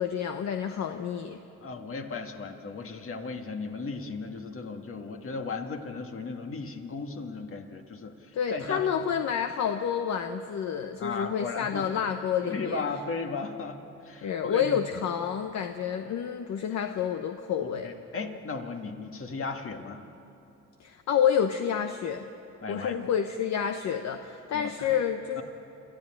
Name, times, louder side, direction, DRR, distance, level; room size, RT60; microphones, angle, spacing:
voice 1, 0.0-1.4 8.3-12.8 14.2-17.9 20.8-22.3 22.7-25.4, left 8 dB, 65° left, 7 dB, 1.0 m, -29 dB
voice 2, 1.6-9.0 11.0-11.9 12.4-14.8 17.6-20.0 22.6-22.9 24.5-24.9 25.4-25.5, left 4 dB, 45° left, 4 dB, 2.1 m, -36 dB
28.0 x 13.5 x 8.9 m, 2.8 s
cardioid pair, 90°, 30 cm